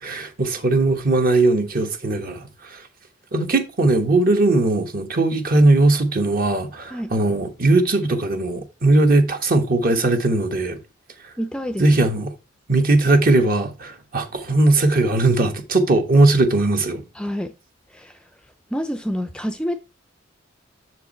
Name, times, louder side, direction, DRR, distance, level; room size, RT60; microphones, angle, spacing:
voice 1, 0.0-2.8 3.3-10.8 11.2-11.3 11.8-12.3 12.7-17.0, right 2 dB, 50° right, 1.2 m, -19 dB
voice 2, 11.4-12.1 17.1-17.5 17.9-18.2 18.7-19.8, equal, 5° left, 0.4 m, -28 dB
7.1 x 4.7 x 4.3 m
head